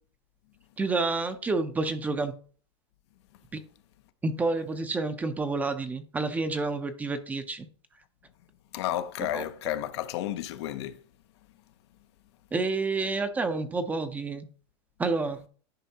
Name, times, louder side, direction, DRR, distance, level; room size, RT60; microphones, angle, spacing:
voice 1, 0.8-2.3 4.2-7.7 9.3-9.4 12.5-14.4 15.0-15.4, right 3 dB, 10° right, 0.6 m, -29 dB
voice 2, 8.7-11.0, left 13 dB, 70° left, 0.8 m, -32 dB
10.5 x 5.6 x 2.9 m
supercardioid pair, 160°, 15 cm